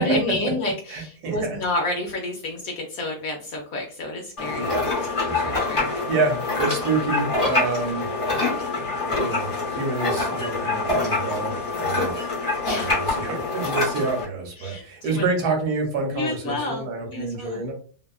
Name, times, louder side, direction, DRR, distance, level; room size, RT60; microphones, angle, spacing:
voice 1, 0.0-4.8 5.4-6.0 12.6-13.0 13.6-13.8 14.6-15.2 16.1-17.6, left 2 dB, 70° left, 1 dB, 0.9 m, -29 dB
voice 2, 0.9-1.6 4.6-4.9 5.2-8.1 9.0-12.2 12.8-17.7, right 3 dB, 70° right, 1 dB, 1.2 m, -28 dB
sound 1, 4.4-14.2, left 3 dB, 25° left, 0.7 m, -25 dB
2.8 x 2.2 x 2.3 m, 0.43 s
omnidirectional pair, 1.8 m